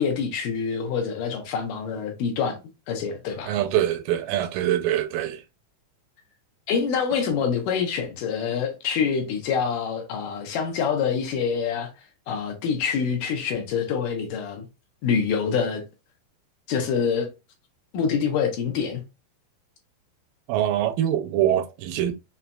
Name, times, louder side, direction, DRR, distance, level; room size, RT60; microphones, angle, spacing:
voice 1, 0.0-2.6 2.9-3.6 6.7-11.9 12.3-14.7 15.0-15.8 16.7-17.3 17.9-19.0, left 6 dB, 75° left, 2.3 m, -26 dB
voice 2, 3.5-5.4 20.5-22.1, right 11 dB, 80° right, 2.2 m, -24 dB
6.0 x 2.8 x 2.2 m
omnidirectional pair, 4.0 m